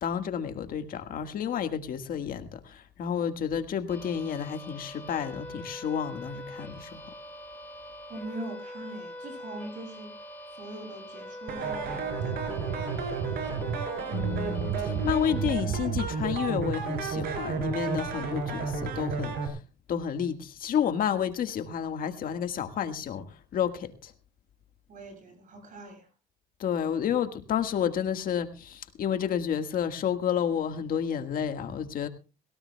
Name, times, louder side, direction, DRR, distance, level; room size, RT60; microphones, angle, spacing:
voice 1, 0.0-7.1 14.1-19.6 19.9-24.1 26.6-32.1, left 8 dB, 60° left, 8 dB, 1.7 m, -30 dB
sound 1, 3.9-15.5, left 1 dB, 10° left, 3.3 m, -43 dB
voice 2, 8.1-10.1 10.5-13.6 24.9-26.1, right 1 dB, 50° right, 4 dB, 7.8 m, -42 dB
sound 2, 11.5-19.5, right 5 dB, 70° right, 5.4 m, -31 dB
21.0 x 17.5 x 2.3 m, 0.31 s
cardioid pair, 110°, 17 cm